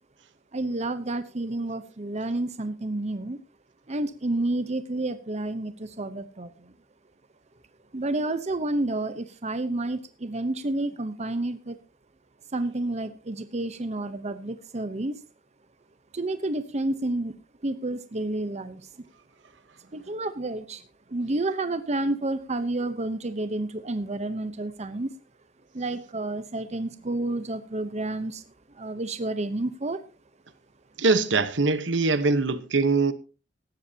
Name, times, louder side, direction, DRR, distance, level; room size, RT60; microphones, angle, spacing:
voice 1, 0.5-3.4 3.9-6.7 7.9-11.8 12.5-15.2 16.1-17.3 17.6-18.9 19.9-20.8 21.1-25.1 25.7-28.4 28.7-30.0, right 2 dB, 35° right, 0.9 m, -30 dB
voice 2, 31.0-33.1, right 3 dB, 70° right, 1.1 m, -22 dB
17.0 x 13.0 x 2.8 m
head